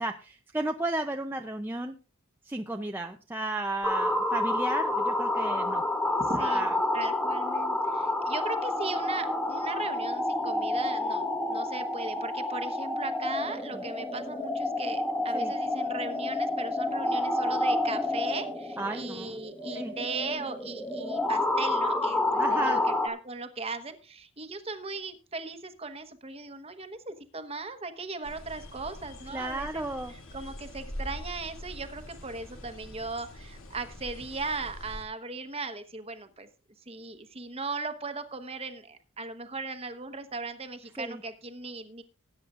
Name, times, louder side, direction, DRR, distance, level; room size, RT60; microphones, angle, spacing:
voice 1, 0.0-1.9 2.5-5.8 6.3-6.8 13.7-13.8 15.3-15.5 18.8-19.4 19.7-19.9 22.4-22.8 29.3-30.1 41.0-41.2, right 2 dB, 10° right, 3 dB, 0.5 m, -33 dB
sound 1, 3.8-23.1, left 2 dB, 5° left, 1.3 m, -29 dB
voice 2, 6.2-6.7 6.9-29.8 30.1-36.5 36.9-42.0, right 3 dB, 25° right, 9 dB, 1.0 m, -38 dB
sound 2, 28.2-35.0, equal, 65° left, 2.4 m, -43 dB
20.0 x 9.4 x 2.5 m, 0.33 s
head